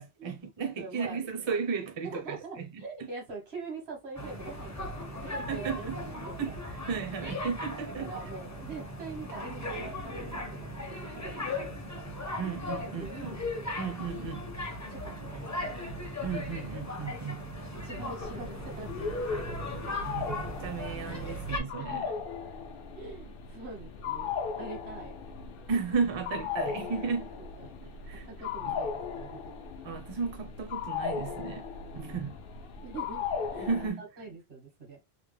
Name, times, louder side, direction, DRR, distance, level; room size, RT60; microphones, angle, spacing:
voice 1, 0.0-2.7 5.5-5.9 6.4-8.3 12.4-13.3 13.8-14.5 16.2-17.4 20.0-22.0 25.7-27.3 28.1-28.3 28.6-28.7 29.8-31.6 32.0-32.4 33.6-34.0, right 5 dB, 35° right, 0.5 m, -34 dB
voice 2, 0.8-1.2 2.0-6.5 8.0-12.1 13.0-13.4 14.9-15.3 15.5-15.8 16.9-17.2 17.8-19.7 21.2-21.3 21.8-22.2 23.0-24.3 24.6-25.1 27.4-27.8 28.3-29.5 31.9-32.2 32.8-33.2 33.5-33.7 34.0-35.0, right 4 dB, 80° right, 1.6 m, -44 dB
sound 1, 4.2-21.6, left 1 dB, 20° left, 0.6 m, -38 dB
sound 2, 18.2-33.9, left 6 dB, 65° left, 0.7 m, -37 dB
3.2 x 2.1 x 3.2 m
omnidirectional pair, 1.1 m